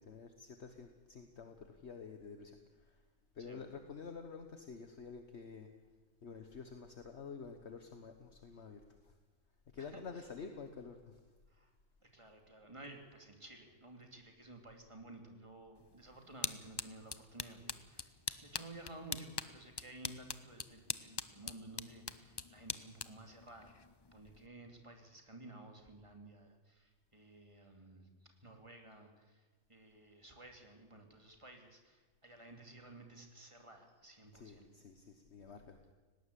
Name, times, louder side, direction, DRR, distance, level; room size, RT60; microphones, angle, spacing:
voice 1, 0.0-3.0 3.3-5.7 6.2-9.2 9.7-11.3 12.8-12.9 34.3-35.9, left 5 dB, 55° left, 7 dB, 1.4 m, -50 dB
voice 2, 9.8-10.3 11.5-11.7 12.0-23.8 24.1-34.7, right 2 dB, 20° right, 4 dB, 2.7 m, -54 dB
sound 1, 15.8-24.5, left 4 dB, 30° left, 0.5 m, -45 dB
19.0 x 17.5 x 8.4 m, 1.3 s
omnidirectional pair, 1.4 m